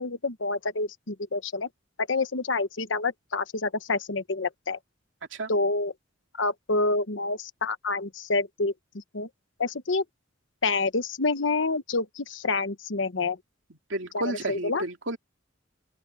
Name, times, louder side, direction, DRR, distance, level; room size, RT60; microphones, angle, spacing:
voice 1, 0.0-1.7 2.0-4.8 5.5-5.9 6.3-9.3 9.6-10.0 10.6-13.4 14.1-14.8, left 3 dB, 75° left, 1.1 m, -28 dB
voice 2, 13.9-15.2, right 2 dB, 80° right, 2.7 m, -31 dB
open air
head